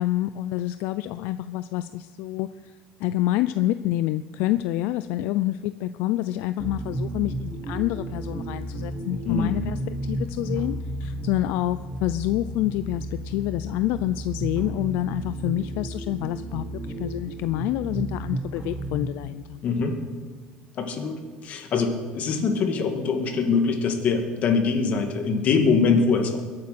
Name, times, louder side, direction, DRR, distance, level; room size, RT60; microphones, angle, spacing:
voice 1, 0.0-2.7 3.0-16.6 17.0-19.6 22.3-22.5, left 15 dB, 75° left, 12 dB, 0.4 m, -27 dB
sound 1, 6.6-19.3, right 1 dB, 15° right, 1.2 m, -33 dB
voice 2, 9.2-9.6 19.6-20.0 20.8-26.4, left 5 dB, 45° left, 4 dB, 2.2 m, -23 dB
21.5 x 8.7 x 5.9 m, 1.5 s
cardioid pair, 140°, 3 cm